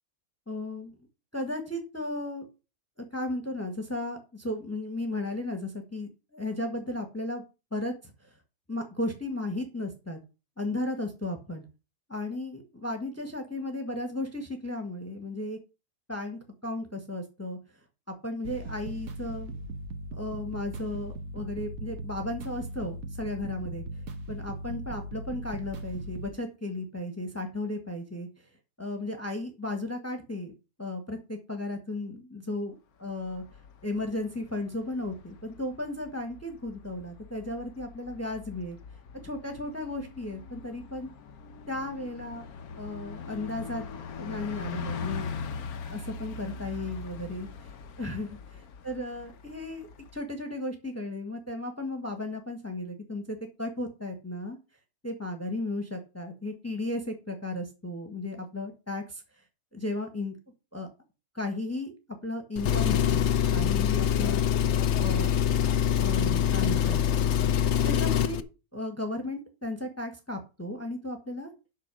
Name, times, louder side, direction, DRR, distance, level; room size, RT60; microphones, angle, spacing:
voice 1, 0.5-0.9 1.3-2.4 3.1-7.4 7.7-8.3 8.7-10.2 10.6-11.6 12.1-15.6 16.1-17.6 18.1-19.5 20.1-23.8 24.3-28.3 28.8-30.5 30.8-32.8 33.0-33.4 33.8-38.8 39.2-41.1 41.7-42.5 42.8-43.8 44.2-45.4 45.9-47.7 48.0-49.9 50.1-54.6 55.0-59.2 59.7-60.4 60.7-60.9 61.3-61.9 62.2-64.4 65.0-65.3 65.9-67.0 67.8-68.5 68.7-71.5, left 2 dB, 10° left, 4 dB, 1.5 m, -35 dB
sound 1, 18.4-26.3, right 1 dB, 70° right, 1.5 m, -39 dB
Bus, 33.1-50.2, left 5 dB, 85° left, 1.4 m, -42 dB
Engine, 62.6-68.4, left 9 dB, 60° left, 0.9 m, -24 dB
8.4 x 6.1 x 6.1 m, 0.30 s
omnidirectional pair, 1.5 m